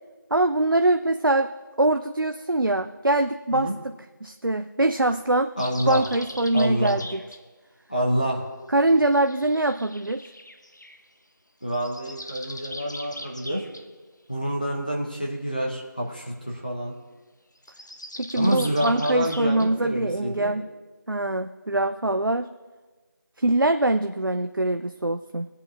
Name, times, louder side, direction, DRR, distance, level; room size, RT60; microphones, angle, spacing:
voice 1, 0.3-1.5 1.8-3.7 4.2-5.5 5.9-7.2 8.7-10.2 18.2-20.7 21.1-22.5 23.4-25.5, right 2 dB, 75° right, 6 dB, 0.5 m, -23 dB
sound 1, 5.6-7.4 9.0-11.0 11.6-13.8 17.6-19.7, left 1 dB, 60° left, 0.9 m, -41 dB
voice 2, 5.6-6.0 6.5-7.0 7.9-8.5 11.6-13.6 14.3-16.9 18.4-20.5, equal, 25° left, -2 dB, 1.0 m, -27 dB
21.5 x 8.4 x 2.5 m, 1.3 s
figure-of-eight pair, 175°, 11 cm